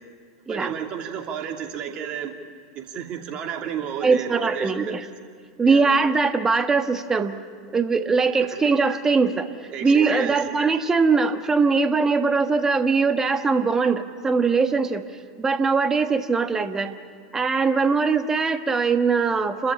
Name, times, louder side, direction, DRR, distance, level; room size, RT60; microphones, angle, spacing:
voice 1, 0.5-2.3 2.7-5.0 5.6-5.9 8.4-8.6 9.7-10.4, right 8 dB, 40° right, 3 dB, 2.7 m, -32 dB
voice 2, 4.0-5.1 5.6-7.4 7.7-9.5 9.8-15.0 15.4-16.9 17.3-19.7, right 4 dB, 20° right, 8 dB, 1.5 m, -21 dB
29.5 x 14.0 x 8.6 m, 2.1 s
figure-of-eight pair, 85°, 3 cm